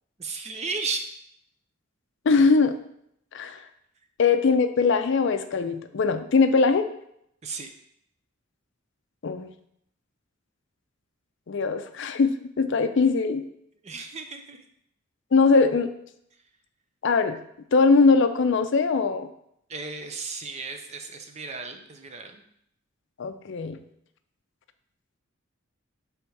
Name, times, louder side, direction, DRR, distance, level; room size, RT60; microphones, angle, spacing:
voice 1, 0.2-1.1 7.4-7.7 13.8-14.6 19.7-22.4, right 4 dB, 30° right, 6 dB, 0.5 m, -34 dB
voice 2, 2.3-2.7 3.3-3.6 4.2-6.9 9.2-9.5 11.5-13.4 15.3-15.9 17.0-17.4 17.7-19.3 23.2-23.8, left 4 dB, 60° left, 9 dB, 0.4 m, -21 dB
6.8 x 3.5 x 4.5 m, 0.73 s
head